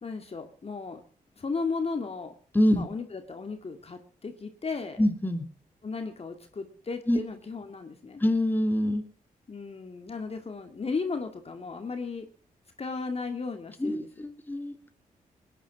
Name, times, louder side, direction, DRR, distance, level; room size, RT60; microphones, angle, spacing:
voice 1, 0.0-1.0 1.4-2.3 2.7-5.0 5.8-8.2 9.5-12.3 12.8-14.1, left 4 dB, 40° left, 6 dB, 2.2 m, -35 dB
voice 2, 5.0-5.4 7.1-7.2 8.2-9.0 13.8-14.7, left 1 dB, 10° left, 6 dB, 2.8 m, -25 dB
20.0 x 10.5 x 6.2 m, 0.43 s
cardioid pair, 65°, 15 cm